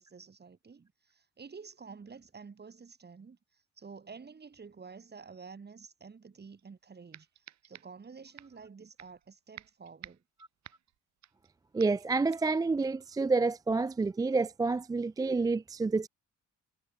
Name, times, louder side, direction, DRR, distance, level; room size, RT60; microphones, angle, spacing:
voice 1, 0.0-7.3 7.6-10.2, right 5 dB, 35° right, 3.7 m, -50 dB
sound 1, 6.6-6.7 7.1-8.1 8.4-8.6 9.0-9.3 9.6-11.5 11.8-12.1 12.3-12.6, right 12 dB, 65° right, 1.1 m, -52 dB
voice 2, 11.7-16.1, right 3 dB, 15° right, 0.3 m, -29 dB
cardioid pair, 90°, 30 cm